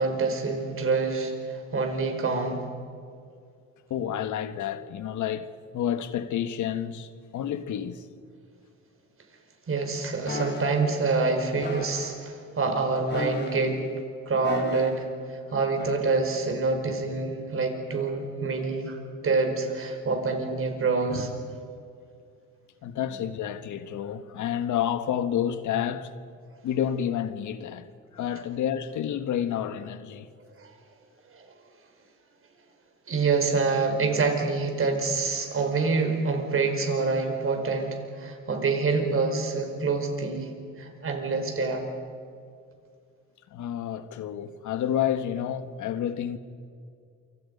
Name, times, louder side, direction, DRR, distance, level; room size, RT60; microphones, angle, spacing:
voice 1, 0.0-2.7 9.7-13.8 14.2-19.0 19.2-21.3 30.6-30.7 31.3-31.5 33.1-41.9, right 4 dB, 45° right, 4.9 m, -26 dB
voice 2, 3.9-8.1 22.8-26.1 26.6-27.9 28.1-30.3 43.5-46.4, left 9 dB, 75° left, 1.5 m, -29 dB
sound 1, 10.3-10.7 11.6-12.1 13.1-13.7 14.4-15.0 15.8-16.0, left 2 dB, 35° left, 5.4 m, -34 dB
28.0 x 25.0 x 5.4 m
cardioid pair, 90°, 30 cm